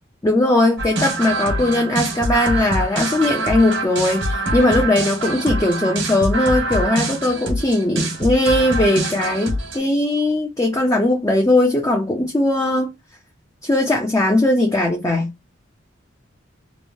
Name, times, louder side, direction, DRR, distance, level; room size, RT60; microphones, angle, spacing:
voice 1, 0.2-12.9 13.6-15.3, left 1 dB, 15° left, 0.4 m, -19 dB
sound 1, 0.8-9.8, right 1 dB, 75° right, 1.2 m, -24 dB
3.0 x 2.1 x 2.6 m
head